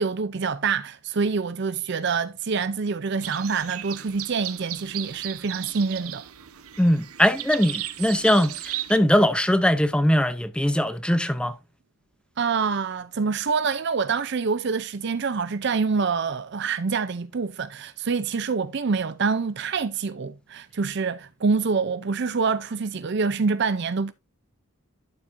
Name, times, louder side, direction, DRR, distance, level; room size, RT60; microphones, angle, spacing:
voice 1, 0.0-6.2 12.4-24.1, right 5 dB, 50° right, 0.5 m, -26 dB
sound 1, 3.2-9.0, right 13 dB, 80° right, 0.9 m, -36 dB
voice 2, 6.8-11.5, equal, 5° left, 0.6 m, -21 dB
12.0 x 7.3 x 2.6 m
head